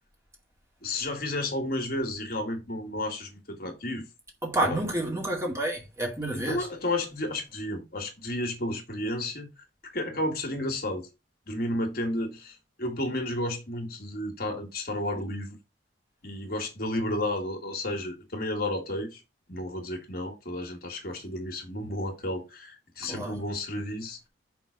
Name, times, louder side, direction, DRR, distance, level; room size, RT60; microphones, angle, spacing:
voice 1, 0.8-4.0 4.6-4.8 6.3-9.5 9.9-11.1 11.5-15.6 16.2-19.2 19.5-24.3, left 1 dB, 50° left, 2.0 m, -32 dB
voice 2, 4.4-6.7 23.0-23.4, right 1 dB, 15° right, 2.1 m, -29 dB
6.0 x 4.0 x 5.2 m
head